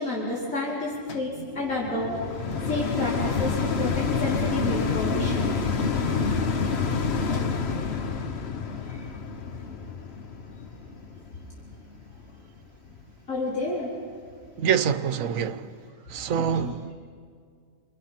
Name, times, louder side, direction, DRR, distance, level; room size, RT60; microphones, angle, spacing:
voice 1, 0.0-2.2 2.7-5.6 7.8-8.1 8.8-9.1 13.3-13.9 16.4-16.7, left 2 dB, 90° left, 4.6 m, -30 dB
sound 1, 1.1-12.4 13.0-13.1, left 5 dB, 55° left, 1.2 m, -28 dB
voice 2, 14.6-15.7 16.1-16.9, right 8 dB, 85° right, 1.3 m, -25 dB
29.0 x 23.0 x 5.9 m
omnidirectional pair, 1.4 m